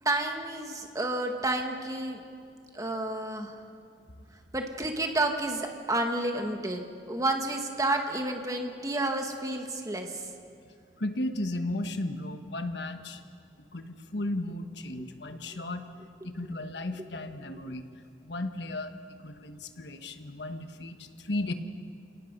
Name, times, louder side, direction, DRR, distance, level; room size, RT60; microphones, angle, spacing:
voice 1, 0.0-2.2 2.7-3.6 4.5-6.8 7.1-10.2 15.0-15.1 15.5-15.6, right 2 dB, 20° right, 3 dB, 1.7 m, -30 dB
voice 2, 10.7-13.2 13.7-15.8 16.2-17.9 18.2-18.9 19.2-21.5, left 1 dB, 75° left, 7 dB, 1.3 m, -35 dB
28.0 x 18.0 x 5.4 m, 2.3 s
head